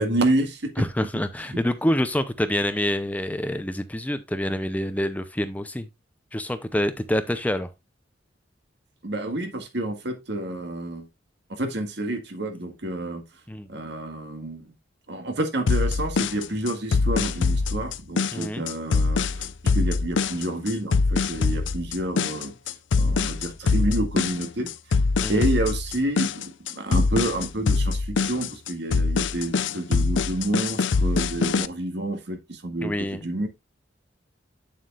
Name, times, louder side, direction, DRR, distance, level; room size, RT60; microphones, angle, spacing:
voice 1, 0.0-0.7 9.0-11.1 11.5-13.3 13.7-14.7 15.1-22.6 23.0-24.7 25.3-33.5, right 1 dB, 65° right, 1.9 m, -29 dB
voice 2, 0.8-5.9 6.3-7.7 13.5-13.7 18.3-18.6 25.2-25.4 32.8-33.2, left 1 dB, 10° left, 0.6 m, -26 dB
sound 1, 15.7-31.7, left 4 dB, 80° left, 0.5 m, -23 dB
8.6 x 7.5 x 2.4 m
head